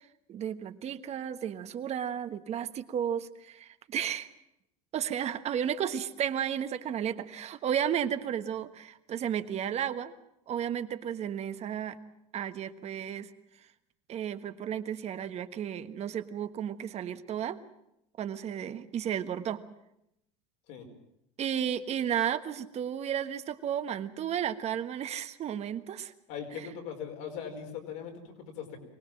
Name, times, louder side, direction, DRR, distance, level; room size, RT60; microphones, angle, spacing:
voice 1, 0.3-4.3 4.9-10.1 10.5-12.0 12.3-13.3 14.1-17.6 18.2-19.6 21.4-26.1, right 9 dB, 45° right, 10 dB, 1.4 m, -33 dB
voice 2, 26.3-28.8, left 7 dB, 75° left, 3 dB, 5.0 m, -40 dB
24.0 x 18.0 x 7.6 m, 0.80 s
supercardioid pair, 105°, 16 cm